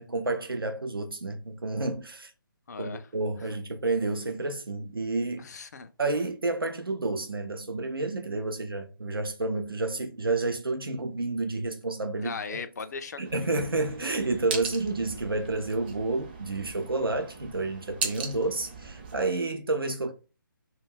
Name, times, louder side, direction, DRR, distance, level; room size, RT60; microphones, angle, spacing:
voice 1, 0.0-2.3 2.8-5.5 6.0-12.6 13.2-20.1, right 2 dB, 85° right, 0.5 m, -30 dB
voice 2, 2.7-3.1 5.4-5.9 12.2-13.5, left 5 dB, 50° left, 0.4 m, -38 dB
sound 1, 13.2-19.3, right 4 dB, 25° right, 0.5 m, -39 dB
2.2 x 2.1 x 3.3 m
figure-of-eight pair, 145°, 12 cm